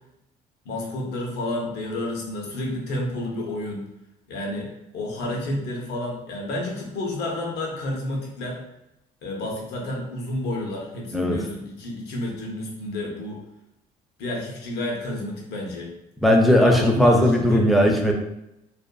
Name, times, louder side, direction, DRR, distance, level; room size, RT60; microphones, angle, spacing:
voice 1, 0.6-3.9 4.3-8.6 9.2-13.4 14.2-15.9 16.6-17.7, left 1 dB, 75° left, -1 dB, 0.8 m, -30 dB
voice 2, 16.2-18.1, equal, ahead, 1 dB, 0.4 m, -17 dB
2.5 x 2.5 x 2.2 m, 0.85 s
cardioid pair, 110°, 17 cm